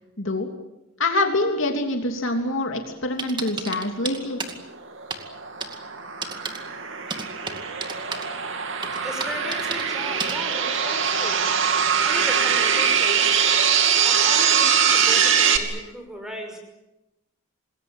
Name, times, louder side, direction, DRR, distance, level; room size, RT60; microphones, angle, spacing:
voice 1, 0.2-0.5 1.0-4.4, left 2 dB, 60° left, 3 dB, 3.1 m, -25 dB
sound 1, 3.2-4.5 5.1-5.2 5.6-5.8 6.2-6.6 7.1-8.3 8.8-9.8 10.2-10.3, right 4 dB, 20° right, 2.3 m, -31 dB
sound 2, 4.7-15.6, right 7 dB, 60° right, 2.7 m, -22 dB
voice 2, 9.0-11.6 12.0-13.6 14.0-16.6, equal, 5° right, 4 dB, 5.8 m, -36 dB
27.0 x 21.0 x 9.1 m, 0.94 s
head